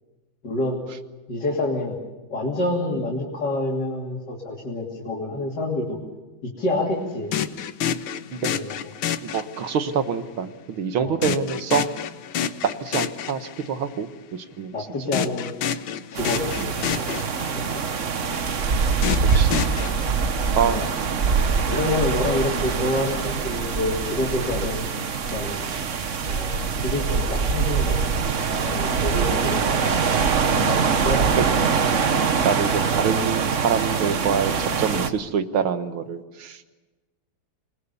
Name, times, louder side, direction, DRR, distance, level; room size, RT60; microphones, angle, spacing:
voice 1, 0.4-0.8 1.3-2.0 2.3-6.0 6.4-7.3 8.4-8.7 11.0-11.2 14.7-15.5 16.1-17.2 17.5-17.6 20.6-20.9 21.7-24.8 25.3-25.6 26.2-30.0 30.6-31.3, left 2 dB, 55° left, -2 dB, 3.6 m, -28 dB
sound 1, 7.3-10.0 11.2-13.8 15.1-17.8 19.0-19.9, left 9 dB, 85° left, 1.8 m, -29 dB
voice 2, 9.2-11.9 12.8-14.7 19.2-19.6 20.6-20.9 31.4-31.5 32.4-36.6, right 7 dB, 85° right, 10 dB, 2.1 m, -26 dB
sound 2, 16.1-35.1, right 5 dB, 45° right, 1.3 m, -23 dB
28.0 x 21.0 x 7.0 m, 1.2 s
omnidirectional pair, 2.2 m